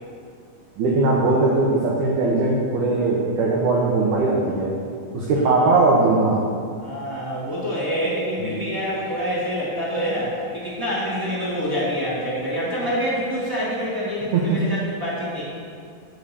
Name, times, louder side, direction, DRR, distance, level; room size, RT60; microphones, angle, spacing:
voice 1, 0.8-4.7 5.1-6.4 8.4-8.6 14.3-14.6, right 3 dB, 70° right, -4 dB, 2.0 m, -20 dB
voice 2, 6.8-15.4, equal, 35° right, -10 dB, 0.3 m, -26 dB
10.5 x 3.9 x 6.9 m, 2.3 s
omnidirectional pair, 4.6 m